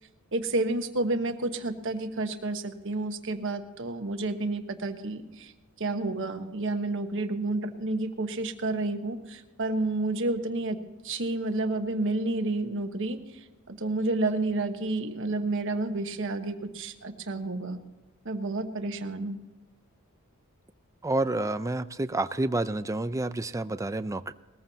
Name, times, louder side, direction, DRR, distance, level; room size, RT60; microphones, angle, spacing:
voice 1, 0.3-5.5 5.8-10.8 11.0-17.8 18.2-19.4, right 2 dB, 60° right, 7 dB, 1.3 m, -30 dB
voice 2, 21.0-24.3, right 2 dB, 15° right, 12 dB, 0.5 m, -29 dB
20.5 x 14.5 x 2.9 m, 1.2 s
head